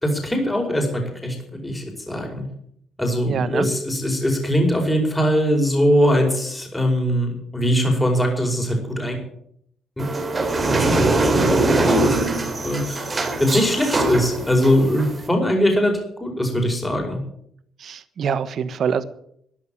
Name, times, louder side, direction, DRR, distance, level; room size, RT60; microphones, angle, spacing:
voice 1, 0.0-2.4 3.0-9.2 12.6-15.9 16.2-17.2, equal, 10° left, 2 dB, 5.2 m, -21 dB
voice 2, 3.3-3.7 17.8-19.0, right 7 dB, 60° right, 13 dB, 1.2 m, -25 dB
sound 1, 10.0-15.3, right 2 dB, 30° right, 3.6 m, -21 dB
13.5 x 10.5 x 8.8 m, 0.70 s
cardioid pair, 90°, 0 cm